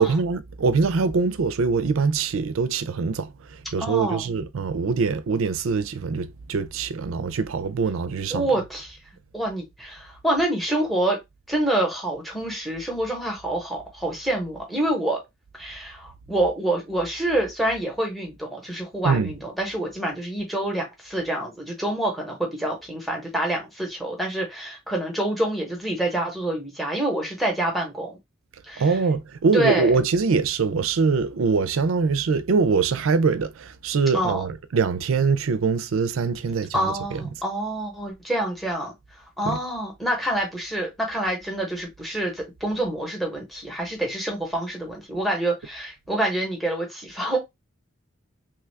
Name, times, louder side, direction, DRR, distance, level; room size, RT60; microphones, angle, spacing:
voice 1, 0.0-8.5 19.0-19.3 28.8-37.3 39.4-39.6, right 5 dB, 75° right, 0.4 m, -23 dB
voice 2, 3.8-4.3 8.3-9.0 9.3-11.2 11.5-15.2 15.6-28.2 28.7-29.0 29.5-29.9 34.1-34.4 36.7-38.9 39.4-47.4, right 1 dB, ahead, 0.9 m, -27 dB
3.1 x 2.3 x 3.3 m
head